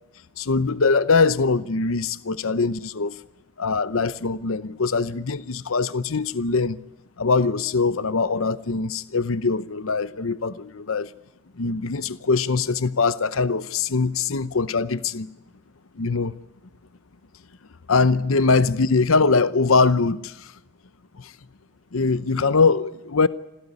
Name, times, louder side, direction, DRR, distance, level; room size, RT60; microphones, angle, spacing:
voice 1, 0.4-3.2 3.6-6.8 7.2-11.1 11.6-15.3 16.0-16.3 17.9-20.5 21.2-21.3 21.9-23.3, left 4 dB, 85° left, 0.8 m, -22 dB
26.5 x 16.0 x 9.7 m
head